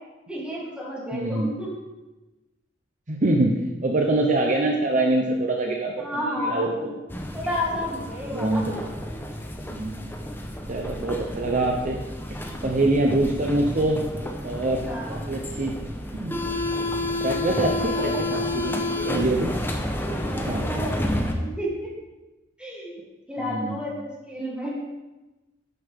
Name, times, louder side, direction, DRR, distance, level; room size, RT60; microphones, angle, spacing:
voice 1, 0.3-1.7 6.0-6.9 7.3-8.6 14.8-15.2 18.0-18.2 18.5-18.9 19.8-21.9 22.6-23.0 23.3-24.7, equal, 5° right, -5 dB, 3.1 m, -32 dB
voice 2, 1.1-1.5 3.1-6.9 8.3-8.7 9.7-10.2 10.7-12.0 12.3-14.0 14.4-15.7 16.1-16.4 17.2-19.5 20.5-20.7 23.4-23.8, right 2 dB, 45° right, 1 dB, 0.9 m, -25 dB
sound 1, 7.1-21.3, left 1 dB, 10° left, 1.0 m, -30 dB
11.5 x 9.4 x 3.7 m, 1.1 s
head